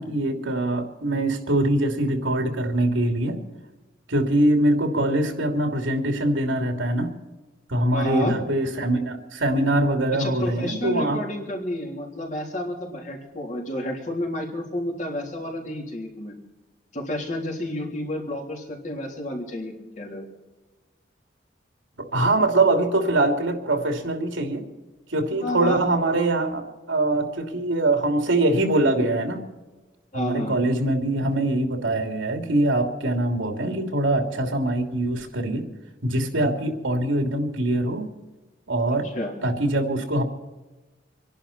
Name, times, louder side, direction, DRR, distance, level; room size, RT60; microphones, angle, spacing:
voice 1, 0.0-3.4 4.1-7.1 7.7-11.2 22.0-24.6 25.1-29.4 30.1-35.6 36.0-38.1 38.7-39.1 39.4-40.2, right 1 dB, 90° right, 4 dB, 2.9 m, -23 dB
voice 2, 7.9-8.3 10.2-16.3 16.9-20.2 25.4-25.8 30.1-30.6 39.1-39.3, left 1 dB, 40° left, 0 dB, 3.4 m, -30 dB
27.0 x 11.0 x 4.3 m, 1.2 s
head